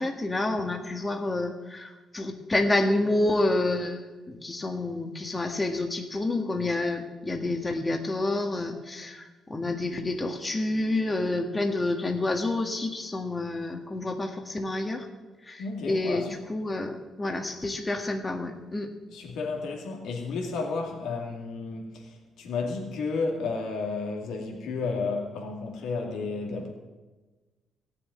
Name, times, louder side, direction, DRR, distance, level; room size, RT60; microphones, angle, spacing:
voice 1, 0.0-15.1 15.5-18.9, left 2 dB, 20° left, 3 dB, 1.6 m, -29 dB
voice 2, 15.6-16.3 19.1-26.7, left 4 dB, 80° left, 1 dB, 2.4 m, -32 dB
15.5 x 6.9 x 9.5 m, 1.2 s
cardioid pair, 90°, 0 cm